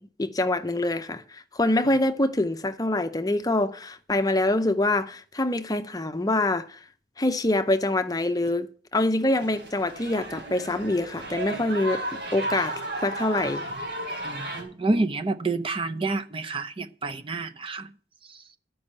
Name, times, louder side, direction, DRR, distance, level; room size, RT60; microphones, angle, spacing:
voice 1, 0.2-6.8 7.2-12.1 12.3-13.7, left 2 dB, 20° left, 0.6 m, -25 dB
sound 1, 9.3-14.6, right 1 dB, 65° right, 4.0 m, -34 dB
voice 2, 14.2-17.9, right 3 dB, 30° right, 0.6 m, -28 dB
12.0 x 5.4 x 8.6 m
head